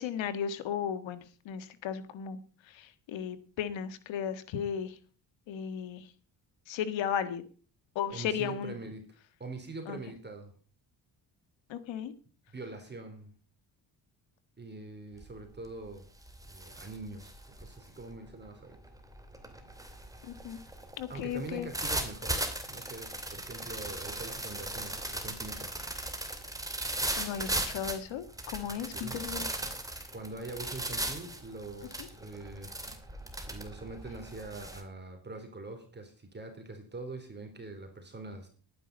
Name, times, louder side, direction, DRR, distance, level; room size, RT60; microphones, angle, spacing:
voice 1, 0.0-2.4 2.7-5.0 5.5-6.1 6.7-7.4 7.9-8.8 9.9-10.0 11.7-12.1 20.2-20.6 21.0-21.7 27.2-29.5, left 8 dB, 80° left, 11 dB, 1.7 m, -35 dB
voice 2, 8.1-9.0 9.4-10.5 12.5-13.3 14.6-16.0 16.5-18.8 21.1-25.7 28.9-29.6 30.1-32.7 33.5-38.5, right 3 dB, 25° right, 4 dB, 3.7 m, -43 dB
sound 1, 15.2-15.5 15.9-34.8, right 1 dB, 10° right, 2.6 m, -38 dB
11.5 x 9.8 x 5.3 m, 0.40 s
cardioid pair, 100°, 44 cm